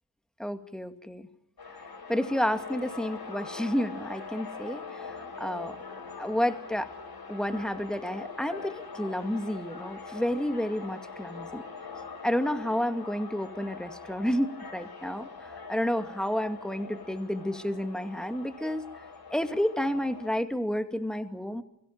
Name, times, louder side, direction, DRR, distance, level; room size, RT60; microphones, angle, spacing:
voice 1, 0.4-1.3 2.1-5.8 6.2-6.9 7.3-11.6 12.2-18.8 19.3-21.6, equal, ahead, 9 dB, 2.1 m, -30 dB
sound 1, 1.6-20.3, left 4 dB, 45° left, 4.8 m, -43 dB
23.5 x 16.5 x 8.9 m, 0.84 s
supercardioid pair, 45°, 49 cm